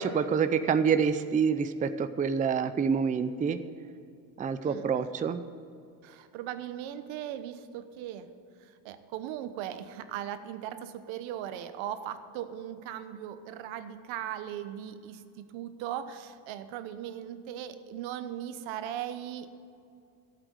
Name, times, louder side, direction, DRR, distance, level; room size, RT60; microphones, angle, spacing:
voice 1, 0.0-3.6 4.4-5.4, right 6 dB, 20° right, 10 dB, 0.5 m, -27 dB
voice 2, 6.0-8.3 8.6-19.5, right 10 dB, 80° right, 10 dB, 1.1 m, -38 dB
12.5 x 8.1 x 7.9 m, 2.5 s
cardioid pair, 120°, 46 cm